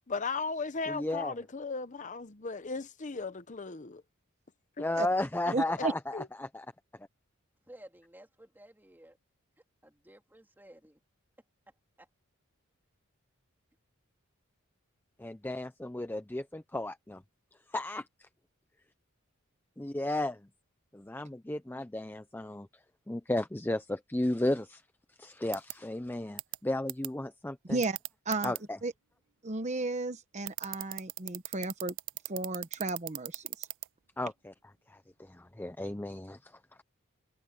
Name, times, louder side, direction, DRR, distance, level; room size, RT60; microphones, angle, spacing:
voice 1, 0.1-4.0 4.8-4.9 6.1-6.3, left 4 dB, 35° left, 0.8 m, -36 dB
voice 2, 0.9-1.4 4.8-6.7 15.2-17.2 17.7-18.3 19.8-20.5 20.9-22.7 23.1-24.8 25.2-27.8 28.4-28.8 34.2-34.5 34.9-36.5, left 1 dB, 10° left, 0.5 m, -34 dB
voice 3, 5.5-5.9 27.7-28.0 28.3-28.5 28.8-28.9 29.4-31.9 32.3-33.7, right 3 dB, 35° right, 1.1 m, -33 dB
voice 4, 7.7-9.2 9.8-11.0 12.0-12.1, right 1 dB, 10° right, 3.0 m, -54 dB
Mouse variety of clicking, 25.5-25.7 26.4-26.6 26.9-27.1 27.8-28.6 30.5-33.9, right 20 dB, 65° right, 0.4 m, -36 dB
head